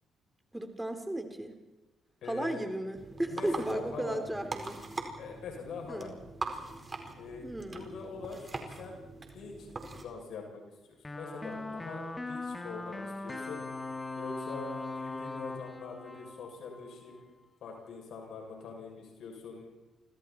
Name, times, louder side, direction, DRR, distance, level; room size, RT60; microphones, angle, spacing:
voice 1, 0.5-1.6 2.3-4.8 5.9-6.1 7.4-7.9, right 1 dB, 10° right, 6 dB, 3.2 m, -35 dB
voice 2, 2.2-2.6 3.3-4.2 5.2-6.1 7.2-9.0 9.3-10.6 10.9-13.7 14.2-17.2 17.6-19.7, left 4 dB, 65° left, 1 dB, 7.0 m, -44 dB
sound 1, 2.9-10.0, right 3 dB, 30° right, 4.5 m, -42 dB
sound 2, 11.0-17.2, left 3 dB, 20° left, 2.5 m, -40 dB
29.0 x 25.5 x 4.4 m, 1.1 s
hypercardioid pair, 45°, 0 cm